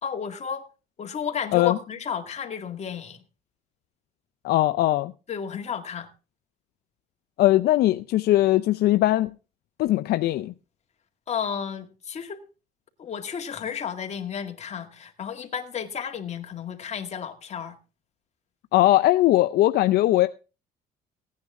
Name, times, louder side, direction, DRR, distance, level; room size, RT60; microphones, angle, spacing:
voice 1, 0.0-0.7 1.0-3.2 5.3-6.1 11.3-12.4 13.0-17.8, left 7 dB, 40° left, 2.0 m, -32 dB
voice 2, 4.4-5.1 7.4-9.3 9.8-10.5 18.7-20.3, left 15 dB, 70° left, 0.6 m, -20 dB
16.5 x 9.6 x 3.7 m
cardioid pair, 110°, 17 cm